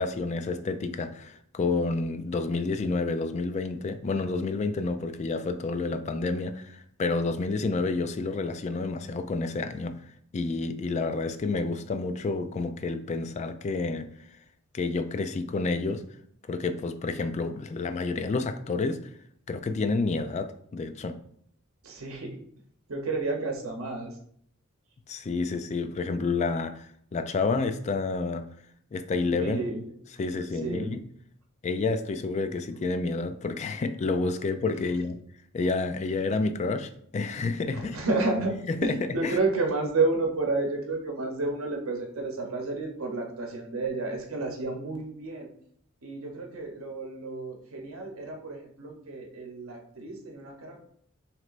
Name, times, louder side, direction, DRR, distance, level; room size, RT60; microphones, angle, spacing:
voice 1, 0.0-10.0 10.3-14.1 14.7-16.0 16.5-19.1 19.5-21.2 25.1-28.5 28.9-29.6 30.2-30.9 31.6-35.2 35.5-38.0 39.2-39.3, left 3 dB, 35° left, 0.3 m, -29 dB
voice 2, 21.8-22.5 22.9-24.2 29.3-30.0 30.5-31.0 37.7-45.5 46.0-50.8, right 3 dB, 80° right, 0.8 m, -31 dB
6.1 x 3.2 x 2.5 m
head